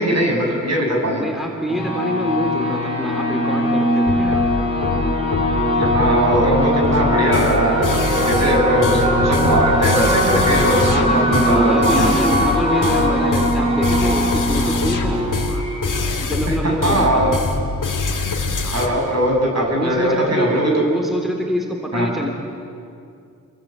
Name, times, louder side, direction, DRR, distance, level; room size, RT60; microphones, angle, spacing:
voice 1, 0.0-1.2 5.8-8.0 8.3-12.1 16.5-17.3 18.3-18.5 18.7-20.8 21.9-22.1, right 1 dB, 55° right, 0 dB, 6.7 m, -20 dB
voice 2, 1.1-4.4 10.8-11.3 11.5-15.2 16.2-17.4 19.5-22.3, equal, ahead, 1 dB, 3.4 m, -25 dB
sound 1, 1.7-17.0, equal, 15° right, 7.4 m, -20 dB
sound 2, 4.1-18.9, left 4 dB, 75° left, 2.4 m, -24 dB
28.0 x 23.0 x 8.9 m, 2.4 s
wide cardioid pair, 95°, 31 cm